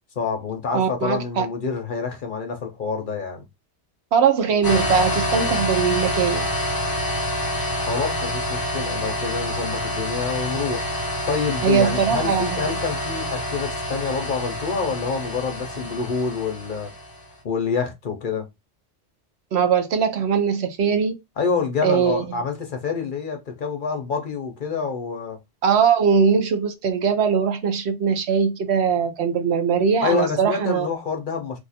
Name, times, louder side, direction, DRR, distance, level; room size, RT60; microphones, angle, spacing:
voice 1, 0.2-3.4 7.8-10.9 11.3-16.9 17.4-18.5 21.4-25.4 30.0-31.6, left 5 dB, 50° left, 0.8 m, -27 dB
voice 2, 0.7-1.5 4.1-6.5 11.6-12.6 19.5-21.1 21.8-22.4 25.6-30.9, right 6 dB, 70° right, 1.0 m, -21 dB
sound 1, 4.6-17.2, left 1 dB, 25° left, 0.5 m, -27 dB
2.7 x 2.4 x 4.1 m
omnidirectional pair, 1.1 m